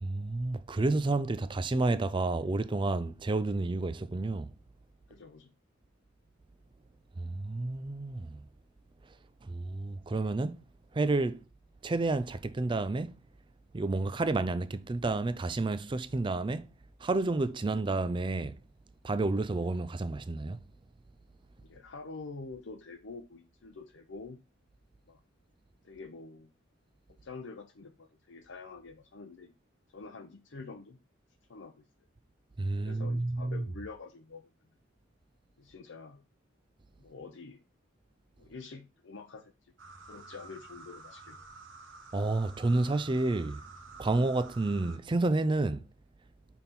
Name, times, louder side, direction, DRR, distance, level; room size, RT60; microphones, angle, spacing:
voice 1, 0.0-4.5 7.2-8.4 9.4-10.6 10.9-11.4 11.8-13.1 13.7-16.7 17.0-18.6 19.0-20.6 32.6-33.6 42.1-43.6 44.0-45.8, right 2 dB, 25° right, 0.4 m, -30 dB
voice 2, 5.1-5.5 21.6-24.4 25.1-25.2 25.8-26.5 27.2-29.5 29.9-31.0 31.5-31.8 32.8-34.4 35.6-36.2 37.0-37.6 38.4-39.5 40.1-41.4, left 4 dB, 65° left, 0.6 m, -46 dB
sound 1, 39.8-45.0, right 3 dB, 70° right, 1.1 m, -50 dB
5.5 x 4.3 x 4.1 m
head